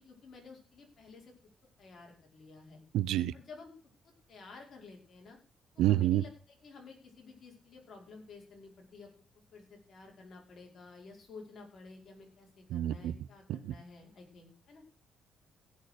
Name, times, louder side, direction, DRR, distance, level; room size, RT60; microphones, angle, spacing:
voice 1, 0.0-1.3 1.8-2.8 3.3-3.7 4.3-5.4 5.7-9.1 9.5-14.8, left 4 dB, 50° left, 0 dB, 5.3 m, -52 dB
voice 2, 2.9-3.3 5.8-6.2 12.7-13.1 13.5-13.7, right 13 dB, 85° right, 18 dB, 0.6 m, -28 dB
16.5 x 6.7 x 6.5 m, 0.36 s
cardioid pair, 90°, 0 cm